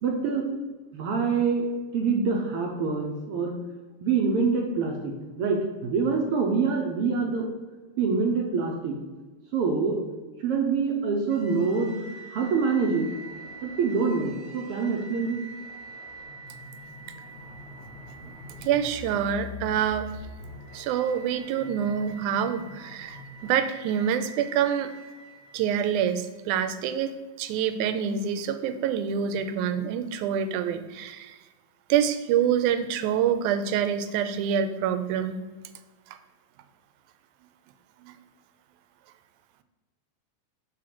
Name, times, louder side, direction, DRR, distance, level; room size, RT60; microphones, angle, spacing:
voice 1, 0.0-0.5 0.9-1.6 1.9-3.5 4.0-7.6 8.0-9.0 9.5-10.0 10.4-12.0 12.3-13.1 13.6-15.4, right 5 dB, 75° right, 0 dB, 1.3 m, -25 dB
sound 1, 11.3-26.4, equal, 55° left, 1.0 m, -44 dB
voice 2, 18.6-20.2 20.7-24.9 25.5-27.1 27.4-31.4 31.9-35.4 38.0-38.1, right 8 dB, 90° right, 10 dB, 2.0 m, -26 dB
6.4 x 3.7 x 5.9 m, 1.3 s
omnidirectional pair, 3.4 m